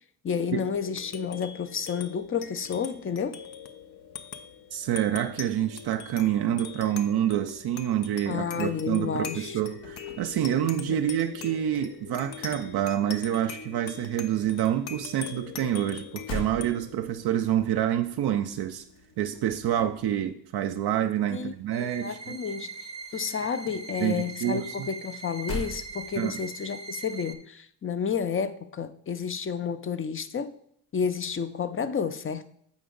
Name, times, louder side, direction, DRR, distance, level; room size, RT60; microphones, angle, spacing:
voice 1, 0.2-3.4 8.3-9.6 21.3-30.5 30.9-32.5, left 6 dB, 30° left, 0.6 m, -31 dB
sound 1, 0.7-19.6, left 6 dB, 60° left, 0.8 m, -43 dB
voice 2, 4.7-18.8 19.2-22.4 24.0-24.9 26.2-26.4, right 11 dB, 55° right, 0.6 m, -27 dB
sound 2, 9.6-11.3 11.6-13.5 13.8-22.5 22.8-26.5, equal, 75° left, 1.4 m, -43 dB
sound 3, 21.7-27.3, right 4 dB, 15° right, 0.8 m, -41 dB
7.3 x 5.0 x 3.9 m
hypercardioid pair, 45°, 45 cm